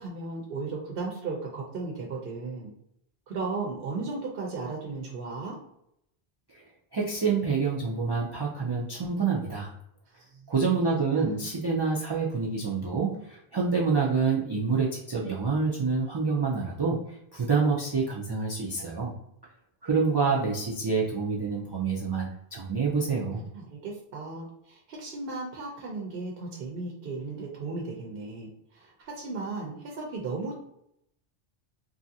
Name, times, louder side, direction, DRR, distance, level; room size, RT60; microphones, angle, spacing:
voice 1, 0.0-2.7 3.3-5.6 10.2-10.5 11.1-11.4 23.3-30.5, right 3 dB, 70° right, -2 dB, 0.8 m, -36 dB
voice 2, 6.9-9.7 10.5-19.1 19.8-23.4, right 4 dB, 40° right, -4 dB, 0.3 m, -27 dB
3.1 x 2.5 x 2.6 m, 0.76 s
omnidirectional pair, 1.0 m